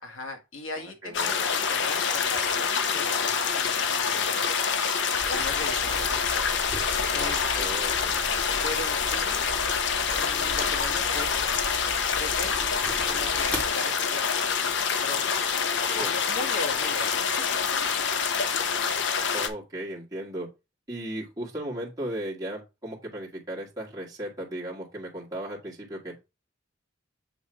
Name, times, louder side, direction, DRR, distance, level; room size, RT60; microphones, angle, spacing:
voice 1, 0.0-4.5 5.3-6.3 7.1-7.5 8.6-9.5 10.2-11.6 12.2-12.7 13.1-15.3 15.8-17.2 17.7-17.8, left 3 dB, 85° left, 1.5 m, -38 dB
voice 2, 0.7-1.4 7.6-8.2 16.0-16.1 19.3-20.5 20.9-26.2, right 1 dB, 20° right, 1.7 m, -36 dB
sound 1, 1.1-19.5, left 6 dB, 60° left, 0.7 m, -26 dB
sound 2, 5.2-13.7, right 1 dB, 5° left, 1.4 m, -39 dB
7.3 x 3.1 x 4.3 m
head